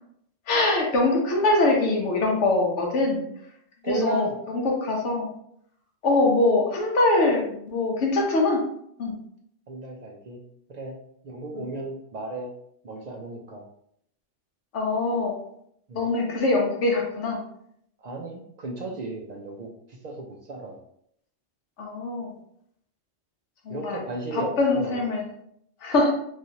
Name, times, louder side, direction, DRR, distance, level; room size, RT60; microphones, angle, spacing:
voice 1, 0.5-3.2 3.8-5.3 6.0-8.6 9.0-9.2 11.6-11.7 14.7-15.4 15.9-17.4 21.8-22.3 23.7-24.0 24.3-25.2 25.8-26.1, left 2 dB, 75° left, -1 dB, 1.1 m, -23 dB
voice 2, 3.8-4.3 9.7-10.4 10.7-11.0 11.2-12.5 12.8-13.6 15.9-16.1 18.0-20.8 23.7-25.1, right 2 dB, 60° right, 1 dB, 0.4 m, -34 dB
3.1 x 2.7 x 2.6 m, 0.71 s
omnidirectional pair, 1.2 m